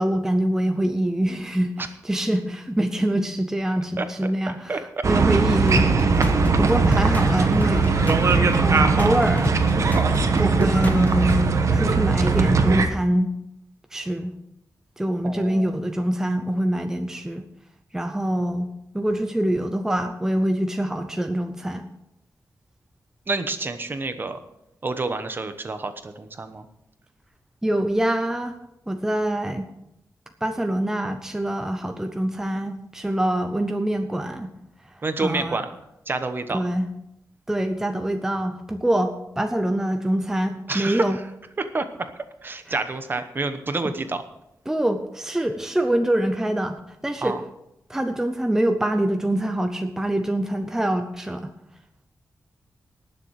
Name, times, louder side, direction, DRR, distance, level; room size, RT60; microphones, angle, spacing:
voice 1, 0.0-1.7 2.0-5.9 6.6-7.9 8.6-9.6 10.3-13.3 13.9-14.3 15.0-17.4 17.9-21.8 27.6-28.6 28.9-29.7 30.4-34.5 35.2-35.6 36.5-36.9 37.5-41.2 42.7-42.8 44.7-47.4 47.9-51.5, right 1 dB, 10° right, 6 dB, 0.7 m, -25 dB
voice 2, 4.0-5.1 15.2-15.7 23.3-24.4 24.8-26.6 35.0-35.7 36.1-36.6 40.7-41.2 41.6-42.1 42.4-44.2 47.2-47.4, right 3 dB, 35° right, 9 dB, 1.0 m, -28 dB
sound 1, 5.0-12.9, right 4 dB, 55° right, 1.1 m, -20 dB
sound 2, 5.5-11.4, left 1 dB, 25° left, 1.3 m, -29 dB
19.0 x 6.9 x 4.8 m, 0.84 s
wide cardioid pair, 160°, 6 cm